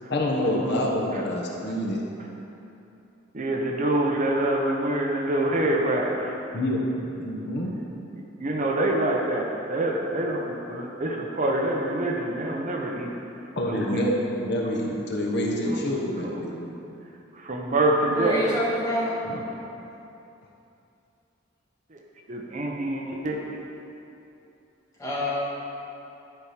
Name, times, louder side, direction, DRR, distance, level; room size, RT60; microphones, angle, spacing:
voice 1, 0.1-2.0 6.5-6.8 7.2-7.7 13.6-16.8 19.3-19.4, left 1 dB, 60° left, -2 dB, 1.0 m, -27 dB
voice 2, 3.3-6.4 8.4-13.1 13.7-14.1 15.7-15.8 17.4-18.4 22.3-23.4, right 1 dB, 40° right, 0 dB, 0.8 m, -26 dB
voice 3, 18.1-19.2 25.0-25.4, equal, 15° left, -8 dB, 2.1 m, -26 dB
11.5 x 4.7 x 5.0 m, 2.8 s
head